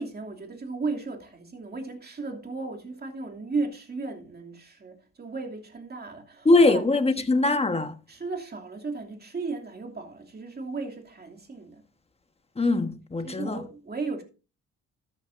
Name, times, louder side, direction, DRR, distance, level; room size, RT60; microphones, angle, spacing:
voice 1, 0.0-6.8 8.1-11.9 13.2-14.2, right 3 dB, 30° right, 2.8 m, -35 dB
voice 2, 6.4-7.9 12.5-13.6, left 2 dB, 20° left, 1.3 m, -22 dB
13.5 x 9.7 x 2.6 m
cardioid pair, 90°, 30 cm